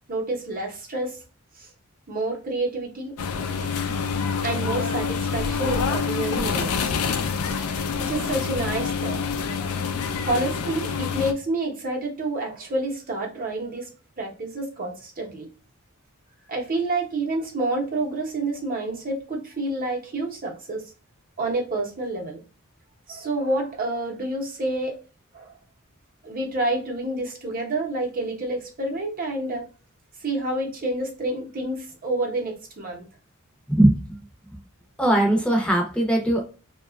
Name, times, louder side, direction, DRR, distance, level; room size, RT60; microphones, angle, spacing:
voice 1, 0.1-1.2 1.6-1.7 2.1-3.9 4.4-6.9 7.4-7.6 8.0-9.2 10.2-13.9 14.2-15.5 16.5-20.8 21.4-22.4 23.1-24.9 25.3-25.5 26.2-29.6 30.2-33.1, right 2 dB, 40° right, 0 dB, 0.8 m, -28 dB
sound 1, 3.2-11.3, left 5 dB, 85° left, 0.4 m, -27 dB
voice 2, 33.7-34.0 35.0-36.4, right 1 dB, 5° left, 0 dB, 0.7 m, -20 dB
2.9 x 2.3 x 2.2 m, 0.35 s
head